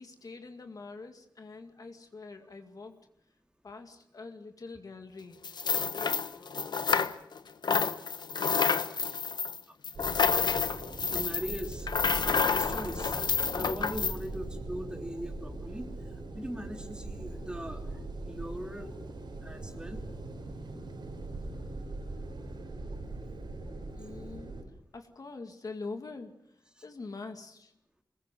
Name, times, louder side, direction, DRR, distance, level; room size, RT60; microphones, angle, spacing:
voice 1, 0.0-3.0 3.6-5.4 5.8-6.6 21.5-21.6 24.0-24.6 24.9-27.7, left 3 dB, 50° left, 5 dB, 2.1 m, -44 dB
sound 1, 5.4-7.4 7.6-14.2, left 5 dB, 70° left, 1.1 m, -29 dB
sound 2, 9.9-24.6, right 2 dB, 85° right, 6.3 m, -41 dB
voice 2, 11.0-13.2 13.5-15.9 16.3-18.9 19.4-20.0, equal, 10° right, 3 dB, 3.4 m, -40 dB
24.5 x 21.0 x 7.7 m, 0.74 s
wide cardioid pair, 130°, 8 cm